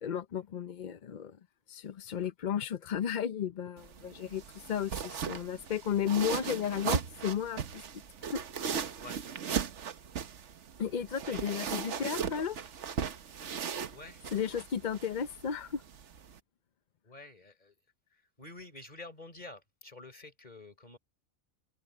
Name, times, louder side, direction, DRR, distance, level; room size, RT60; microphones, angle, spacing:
voice 1, 0.0-1.4 1.7-7.8 8.2-8.4 10.8-12.6 14.3-15.8, left 8 dB, 50° left, 0.6 m, -34 dB
sound 1, 3.8-16.4, right 7 dB, 65° right, 1.3 m, -38 dB
voice 2, 13.9-14.3 17.0-17.8 18.1-21.0, left 2 dB, 30° left, 4.4 m, -49 dB
omnidirectional pair, 1.3 m